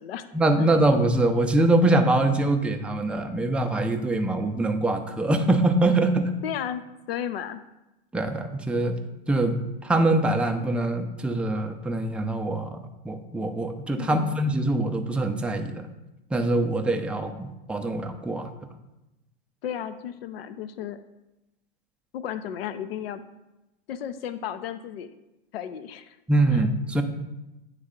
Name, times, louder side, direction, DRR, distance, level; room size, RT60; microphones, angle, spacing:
voice 1, 0.3-6.3 8.1-9.0 9.3-15.9 16.3-18.5 26.3-27.0, right 2 dB, 5° right, 4 dB, 0.4 m, -24 dB
voice 2, 6.4-6.8 7.1-7.6 14.0-14.4 19.6-21.0 22.1-23.2 23.9-25.1 25.5-26.2 26.5-26.6, left 9 dB, 70° left, 12 dB, 0.6 m, -34 dB
9.3 x 3.3 x 3.7 m, 0.98 s
hypercardioid pair, 100°, 31 cm